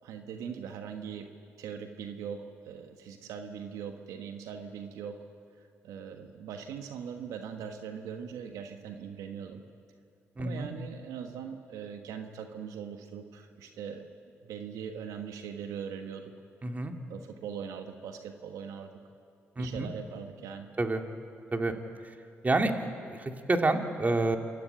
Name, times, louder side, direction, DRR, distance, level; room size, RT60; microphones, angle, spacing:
voice 1, 0.0-1.3 1.6-5.2 5.6-9.6 10.4-14.0 14.4-16.3 17.1-18.9 19.6-20.7, right 7 dB, 80° right, 5 dB, 1.5 m, -41 dB
voice 2, 10.4-10.7 16.6-16.9 19.6-19.9 20.8-21.0 21.5-21.7 22.0-22.1 22.4-24.4, right 2 dB, 30° right, 4 dB, 2.4 m, -28 dB
28.5 x 13.5 x 8.8 m, 2.3 s
supercardioid pair, 60°, 6 cm